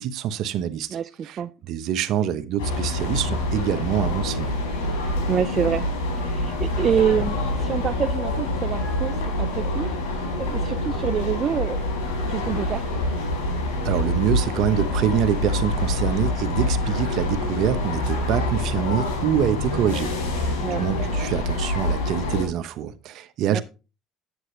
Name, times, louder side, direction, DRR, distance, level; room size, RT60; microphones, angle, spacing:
voice 1, 0.0-1.0 1.2-1.4 1.7-4.6 13.8-23.6, right 9 dB, 65° right, 0.9 m, -25 dB
voice 2, 0.9-1.5 5.3-5.9 6.2-9.9 10.4-11.8 12.3-12.9 20.6-20.8 23.5-23.6, right 8 dB, 45° right, 0.4 m, -26 dB
sound 1, 2.6-22.5, left 1 dB, 85° left, 4.9 m, -26 dB
9.8 x 7.7 x 3.2 m
supercardioid pair, 80°, 0 cm